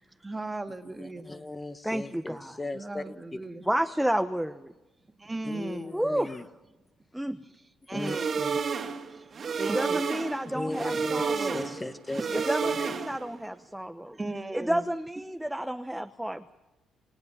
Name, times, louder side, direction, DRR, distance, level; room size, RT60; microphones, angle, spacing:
voice 1, 0.2-1.3 2.7-3.6 5.2-5.9 7.9-8.3 9.1-10.1 10.7-11.1 14.1-14.8, right 2 dB, 20° right, 2.2 m, -37 dB
voice 2, 0.9-3.1 5.4-6.5 7.9-8.6 10.5-12.9, left 2 dB, 20° left, 1.5 m, -37 dB
voice 3, 1.8-2.6 3.7-4.7 5.9-6.4 7.1-7.4 9.6-11.7 12.3-14.2 14.5-16.5, right 1 dB, 5° right, 1.1 m, -31 dB
sound 1, 8.0-13.4, right 5 dB, 50° right, 2.5 m, -31 dB
29.5 x 18.0 x 7.3 m
cardioid pair, 90°, 0 cm